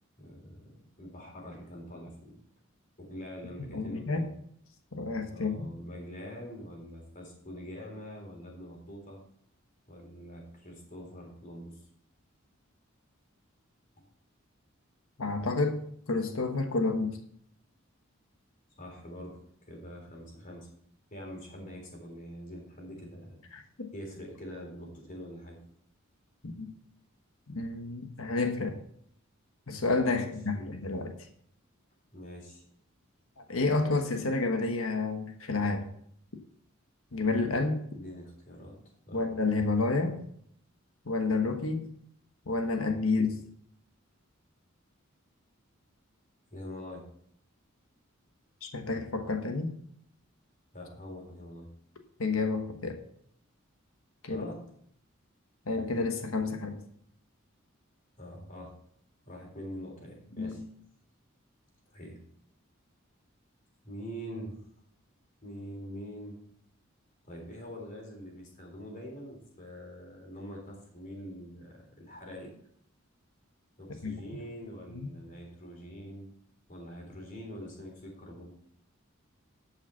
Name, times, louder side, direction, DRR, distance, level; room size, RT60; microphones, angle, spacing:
voice 1, 0.2-2.4 3.0-4.3 5.3-9.2 9.9-11.8 18.8-20.7 21.1-23.4 23.9-25.6 30.1-30.8 32.1-32.6 37.9-38.8 39.1-39.3 46.5-47.1 50.7-51.7 54.3-54.6 58.2-58.8 59.2-60.6 61.9-62.2 63.8-64.6 65.4-66.4 67.2-72.5 73.8-76.3 76.7-78.6, equal, 40° left, 0 dB, 3.7 m, -44 dB
voice 2, 3.7-4.3 4.9-5.5 15.2-17.2 23.5-23.9 26.4-26.7 27.5-28.8 29.7-31.1 33.4-35.9 37.1-37.8 39.1-40.2 41.0-41.9 42.5-43.5 48.6-49.8 52.2-53.0 54.2-54.4 55.7-56.8 60.4-60.6 74.0-74.1 74.9-75.1, left 3 dB, 85° left, 5 dB, 1.2 m, -30 dB
11.5 x 5.7 x 5.7 m, 0.66 s
head